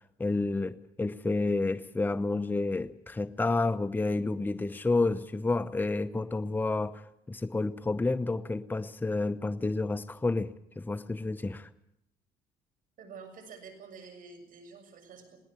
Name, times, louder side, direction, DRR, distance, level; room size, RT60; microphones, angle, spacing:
voice 1, 0.2-7.0 7.3-11.7, left 3 dB, 10° left, 12 dB, 0.8 m, -30 dB
voice 2, 13.0-15.4, right 5 dB, 55° right, 6 dB, 7.1 m, -48 dB
21.0 x 18.0 x 8.2 m, 0.78 s
cardioid pair, 110°, 17 cm